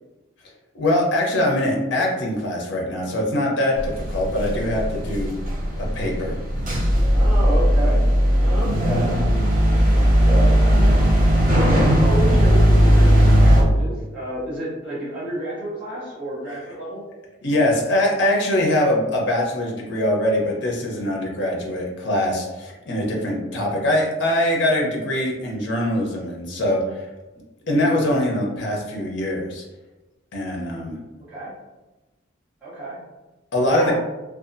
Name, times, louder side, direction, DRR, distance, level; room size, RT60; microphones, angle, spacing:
voice 1, 0.7-5.3 5.7-6.4 17.4-27.1 27.7-29.6 30.3-31.0 33.5-34.0, left 1 dB, 55° left, -1 dB, 0.6 m, -22 dB
sound 1, 3.8-13.6, equal, 40° right, 0.5 m, -17 dB
voice 2, 7.1-8.0 8.4-9.1 9.9-10.6 10.9-11.1 11.6-17.0 31.3-31.5 32.6-33.0 33.7-33.9, right 1 dB, 5° right, -13 dB, 0.8 m, -30 dB
2.7 x 2.3 x 2.5 m, 1.1 s
head